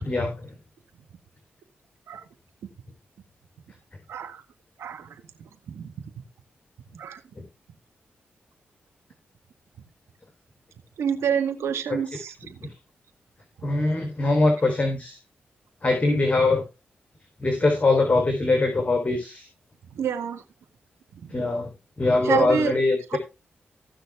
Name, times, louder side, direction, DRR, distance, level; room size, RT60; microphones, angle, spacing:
voice 1, 0.0-0.3 11.9-12.0 12.6-12.7 13.6-15.2 15.8-16.6 17.4-19.5 21.3-21.7 22.0-23.2, left 2 dB, 30° left, 4 dB, 3.8 m, -22 dB
voice 2, 4.1-4.4 4.8-5.1 5.7-5.9 6.9-7.2 11.0-12.6 20.0-20.4 21.2-21.4 22.2-22.7 23.1-23.2, right 7 dB, 80° right, 5 dB, 1.7 m, -27 dB
16.0 x 6.2 x 3.6 m, 0.27 s
supercardioid pair, 40°, 4 cm